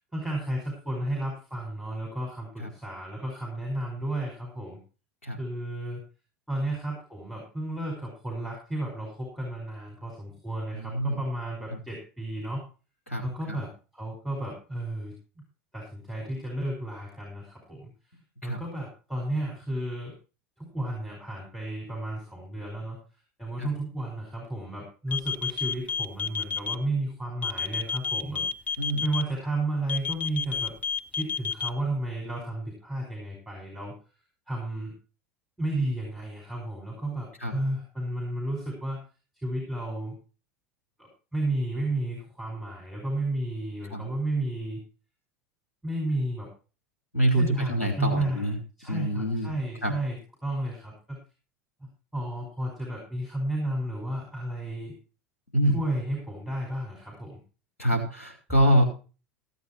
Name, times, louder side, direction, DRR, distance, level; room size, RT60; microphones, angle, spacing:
voice 1, 0.1-4.8 5.4-6.0 6.5-12.6 13.2-15.1 15.7-17.9 18.4-20.1 20.6-23.0 23.4-30.7 31.1-33.9 34.5-34.9 35.6-39.0 39.3-40.1 41.0-44.8 45.8-46.5 47.3-48.5 48.8-50.2 50.4-51.2 52.1-54.9 55.7-57.4, right 1 dB, ahead, -2 dB, 5.2 m, -32 dB
voice 2, 10.7-11.2 13.1-13.6 18.4-18.6 23.6-23.7 28.8-29.1 37.4-37.6 43.9-44.1 47.1-48.6 48.9-49.6 49.8-49.9 55.5-55.8 57.8-58.8, equal, 80° left, 2 dB, 3.8 m, -25 dB
sound 1, 25.1-26.7 27.4-29.2 29.9-31.7, left 7 dB, 20° left, 0.7 m, -29 dB
15.5 x 8.6 x 4.4 m, 0.35 s
figure-of-eight pair, 80°, 7 cm